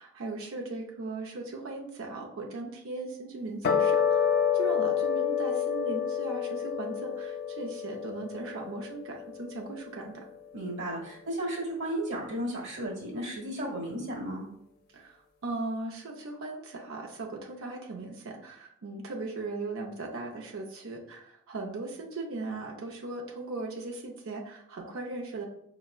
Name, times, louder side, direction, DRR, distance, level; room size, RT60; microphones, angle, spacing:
voice 1, 0.0-10.3 14.9-25.4, right 3 dB, 80° right, -1 dB, 0.6 m, -38 dB
sound 1, 3.6-10.2, left 8 dB, 50° left, 0.5 m, -29 dB
voice 2, 10.5-14.5, right 1 dB, 60° right, -1 dB, 1.2 m, -34 dB
5.3 x 2.1 x 2.4 m, 0.75 s
head